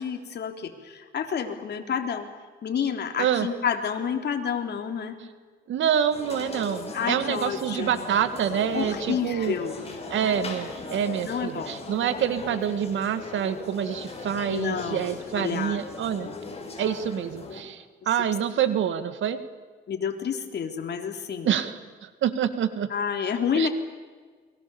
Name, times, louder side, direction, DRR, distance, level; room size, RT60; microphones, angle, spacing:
voice 1, 0.0-2.3 2.6-5.2 6.9-8.1 8.7-9.9 11.2-11.7 14.5-15.1 15.3-16.1 19.9-21.5 22.9-23.7, left 7 dB, 60° left, 5 dB, 3.5 m, -29 dB
voice 2, 5.7-9.5 10.1-16.3 16.8-19.4 21.4-22.9 23.5-23.7, right 9 dB, 75° right, 11 dB, 2.1 m, -27 dB
sound 1, 6.1-17.6, left 3 dB, 30° left, 6.4 m, -38 dB
29.0 x 23.0 x 7.2 m, 1.5 s
cardioid pair, 90°, 20 cm